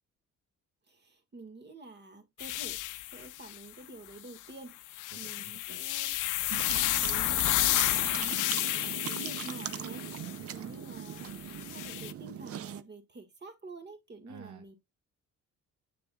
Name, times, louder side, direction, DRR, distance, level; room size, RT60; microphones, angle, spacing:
voice 1, 0.9-2.8 3.1-6.1 7.0-10.2 10.5-11.3 11.7-14.7, right 2 dB, 35° right, 1.9 m, -48 dB
sound 1, 2.4-3.6 4.9-10.4 11.1-12.1, left 16 dB, 85° left, 0.6 m, -31 dB
voice 2, 5.2-5.8 10.1-10.7 14.3-14.7, right 10 dB, 75° right, 1.0 m, -49 dB
sound 2, 6.5-12.8, right 10 dB, 50° right, 0.6 m, -40 dB
7.9 x 6.8 x 2.3 m
cardioid pair, 90°, 30 cm